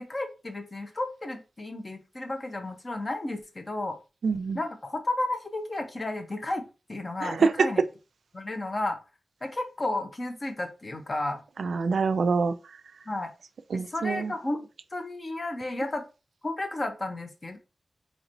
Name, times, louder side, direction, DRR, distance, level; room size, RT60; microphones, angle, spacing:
voice 1, 0.0-4.0 4.5-7.8 8.3-9.0 9.4-11.4 13.1-13.3 13.7-16.0 16.4-17.6, left 2 dB, 30° left, 0.7 m, -33 dB
voice 2, 4.2-4.6 7.2-7.7 11.6-12.5 13.7-14.3, right 4 dB, 85° right, 0.3 m, -25 dB
4.3 x 2.9 x 2.6 m
wide cardioid pair, 150°, 0 cm